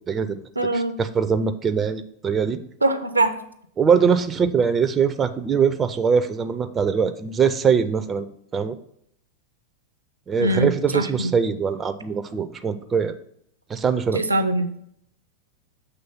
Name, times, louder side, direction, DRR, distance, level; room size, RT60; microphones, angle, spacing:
voice 1, 0.0-0.4 0.7-2.6 3.8-8.3 8.5-8.8 10.3-13.1 13.7-14.2, right 6 dB, 20° right, 11 dB, 0.4 m, -22 dB
voice 2, 0.6-1.0 2.8-3.3 10.3-11.3 14.1-14.7, right 1 dB, 80° right, 10 dB, 0.5 m, -22 dB
6.9 x 3.2 x 5.8 m, 0.70 s
figure-of-eight pair, 90°, 0 cm